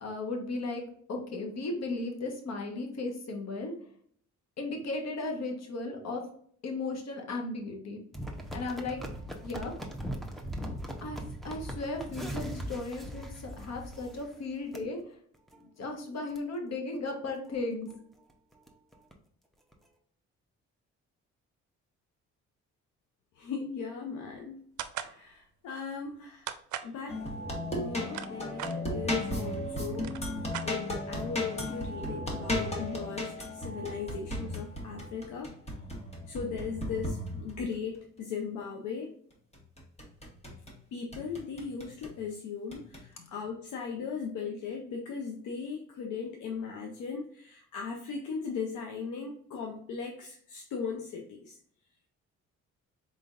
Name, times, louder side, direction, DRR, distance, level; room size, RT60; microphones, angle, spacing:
voice 1, 0.0-3.7 4.6-6.2 6.6-8.0 8.5-9.0 9.4-9.7 11.0-11.2 11.4-15.2 15.8-17.9 43.2-43.3, left 2 dB, 60° left, 2 dB, 1.2 m, -35 dB
sound 1, 8.1-14.4 14.7-14.9 15.3-15.6 16.0-16.1 16.3-16.4 16.9-17.2 17.5-17.6 17.9-18.0 18.3-19.1 19.7-19.8, equal, ahead, 0.7 m, -39 dB
voice 2, 23.4-24.6 25.0-26.5 26.8-27.2 27.7-35.5 36.3-39.1 40.9-51.6, left 5 dB, 75° left, 2 dB, 0.7 m, -38 dB
sound 2, 24.8-25.2 26.5-26.9 27.8-28.8 29.6-29.7 29.9-31.1, right 10 dB, 75° right, 0.5 m, -38 dB
sound 3, 27.1-37.7 39.5-40.8 41.1-42.1 42.7-43.0, left 1 dB, 20° left, 1.3 m, -35 dB
3.9 x 3.8 x 2.4 m, 0.62 s
cardioid pair, 90°, 30 cm